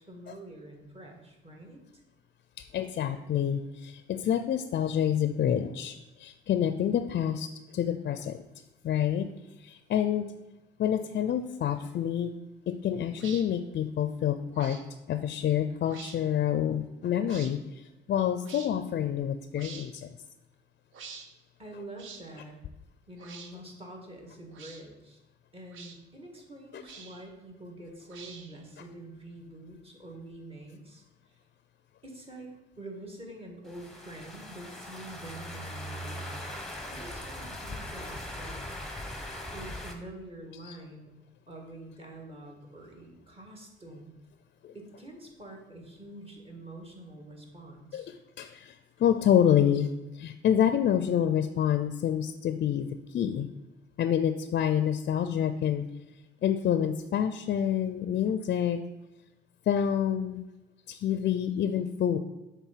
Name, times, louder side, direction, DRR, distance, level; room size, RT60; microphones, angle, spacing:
voice 1, 0.0-1.8 21.6-22.6 23.1-25.2 25.5-31.4 32.0-36.5 36.9-38.6 39.5-41.1 41.5-44.1 44.7-48.1, right 1 dB, 30° right, 0 dB, 1.8 m, -46 dB
voice 2, 2.6-8.4 8.8-9.3 9.6-10.3 10.8-12.4 12.7-14.8 15.1-20.1 26.7-26.8 40.6-40.8 44.6-44.7 47.9-53.5 54.0-55.9 56.4-58.8 59.7-60.4 60.9-62.2, left 9 dB, 55° left, 10 dB, 0.4 m, -28 dB
sound 1, 13.2-13.4 14.5-14.8 15.8-16.2 17.3-17.5 18.4-18.7 19.6-19.9 20.9-21.3 22.0-22.2 23.2-23.5 24.5-24.8 25.7-26.0 26.8-27.3 28.1-28.6, right 5 dB, 80° right, 0.8 m, -46 dB
sound 2, 33.6-39.9, left 1 dB, ahead, 1.0 m, -40 dB
7.3 x 3.5 x 5.7 m, 1.0 s
cardioid pair, 90°, 20 cm